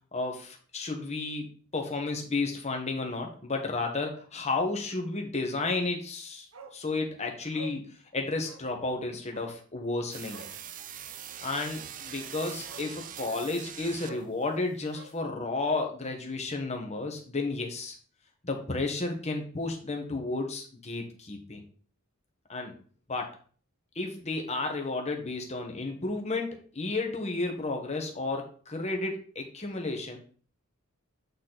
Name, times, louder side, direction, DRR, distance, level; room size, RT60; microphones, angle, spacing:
voice 1, 0.1-6.5 6.7-10.4 11.4-17.9 18.4-21.6 22.5-22.7 23.1-23.3 23.9-30.2, left 3 dB, 30° left, 2 dB, 1.5 m, -32 dB
Bark, 6.5-6.8 7.1-7.2 7.5-7.8 8.4-8.7 9.3-9.6 10.2-10.6 12.2-12.3 12.7-12.9 13.2-13.5 14.0-14.3 14.9-15.9 16.2-16.3, right 5 dB, 70° right, 1.2 m, -48 dB
sound 1, 10.1-14.4, right 9 dB, 40° right, 0.5 m, -42 dB
8.5 x 4.2 x 4.1 m, 0.43 s
head